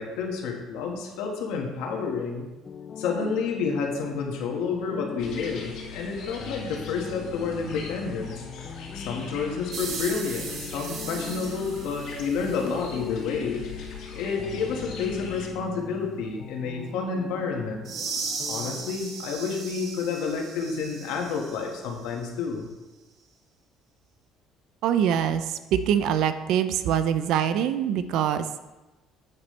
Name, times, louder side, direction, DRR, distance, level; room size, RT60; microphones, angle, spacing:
voice 1, 0.0-2.5 3.0-8.4 8.9-13.6 14.1-17.9 18.5-22.7, left 5 dB, 85° left, 1 dB, 1.8 m, -30 dB
sound 1, 2.6-18.9, left 5 dB, 25° left, 0.4 m, -41 dB
sound 2, 5.2-15.5, left 5 dB, 60° left, 2.2 m, -41 dB
sound 3, 9.7-12.8 17.8-21.9, right 4 dB, 45° right, 1.4 m, -37 dB
voice 2, 24.8-28.5, right 9 dB, 65° right, 11 dB, 0.6 m, -24 dB
10.5 x 8.8 x 3.3 m, 1.1 s
cardioid pair, 165°, 0 cm